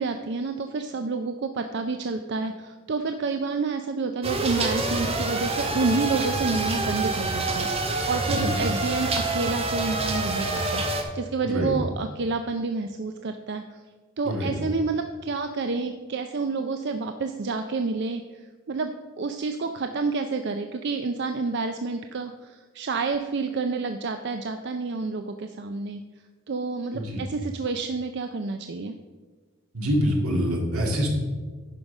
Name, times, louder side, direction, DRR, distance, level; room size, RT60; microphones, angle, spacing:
voice 1, 0.0-7.7 8.1-13.8 14.2-18.9 19.2-26.0 26.5-28.9, right 4 dB, 50° right, 7 dB, 0.4 m, -29 dB
sound 1, 4.2-11.0, right 2 dB, 25° right, 0.9 m, -27 dB
voice 2, 8.3-8.6 11.4-11.7 14.2-14.5 26.9-27.2 29.7-31.1, equal, 80° right, 1 dB, 2.1 m, -25 dB
11.0 x 5.2 x 5.2 m, 1.4 s
head